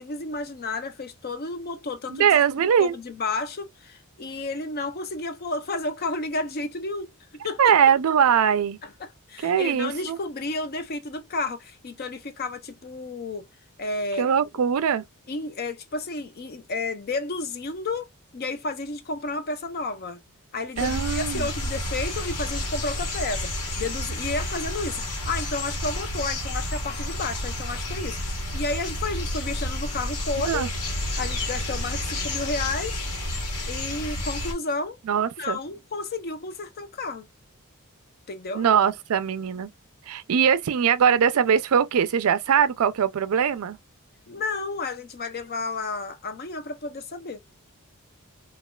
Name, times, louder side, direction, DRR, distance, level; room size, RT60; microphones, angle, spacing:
voice 1, 0.0-2.3 2.6-7.1 7.4-7.7 8.8-13.5 13.8-14.3 15.3-18.1 18.3-20.2 20.5-30.7 31.2-33.1 33.7-35.0 35.4-37.3 38.3-38.7 44.3-47.4, left 3 dB, 45° left, 0.5 m, -32 dB
voice 2, 2.1-3.0 7.6-8.8 9.4-10.2 14.2-15.0 20.8-21.5 30.5-30.7 35.1-35.6 38.5-39.7 40.1-43.8, right 7 dB, 65° right, 0.4 m, -21 dB
sound 1, 20.8-34.5, left 1 dB, 90° left, 1.2 m, -30 dB
3.2 x 2.3 x 2.2 m
head